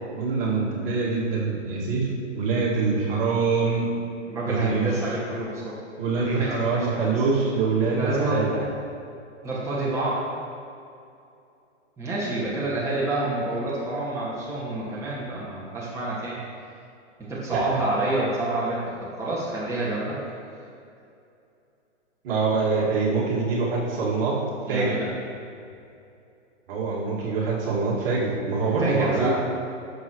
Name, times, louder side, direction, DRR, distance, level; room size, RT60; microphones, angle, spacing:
voice 1, 0.1-2.1 2.3-3.9 4.5-4.9 6.0-8.6 17.5-17.8 22.2-24.4 24.7-25.0 26.7-29.3, right 4 dB, 50° right, -5 dB, 2.2 m, -24 dB
voice 2, 4.3-5.8 6.2-7.2 7.7-8.4 9.4-10.1 12.0-16.4 17.2-20.2 24.6-25.1 28.5-29.3, right 2 dB, 10° right, -8 dB, 1.9 m, -28 dB
11.5 x 6.8 x 3.1 m, 2.6 s
hypercardioid pair, 135°, 37 cm